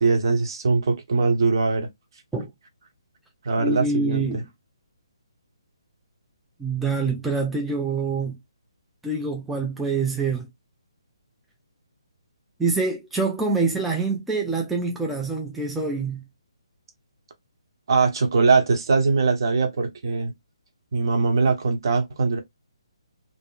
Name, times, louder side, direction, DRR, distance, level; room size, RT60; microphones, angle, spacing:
voice 1, 0.0-1.9 3.4-4.4 17.9-20.3 20.9-22.4, right 4 dB, 55° right, 0.9 m, -21 dB
voice 2, 3.6-4.5 6.6-8.4 9.0-10.5 12.6-16.2, right 4 dB, 5° right, 0.4 m, -25 dB
3.4 x 2.0 x 2.3 m
figure-of-eight pair, 140°, 3 cm